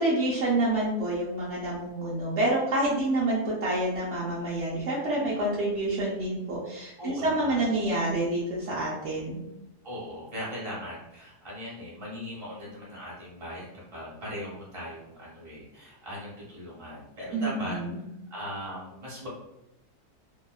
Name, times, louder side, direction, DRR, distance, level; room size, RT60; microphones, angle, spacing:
voice 1, 0.0-9.4 17.3-18.0, right 1 dB, 75° right, -6 dB, 0.6 m, -28 dB
voice 2, 4.6-5.3 7.0-7.7 9.8-17.8 18.3-19.3, equal, 25° right, -6 dB, 0.8 m, -39 dB
2.7 x 2.2 x 2.3 m, 0.90 s
omnidirectional pair, 1.8 m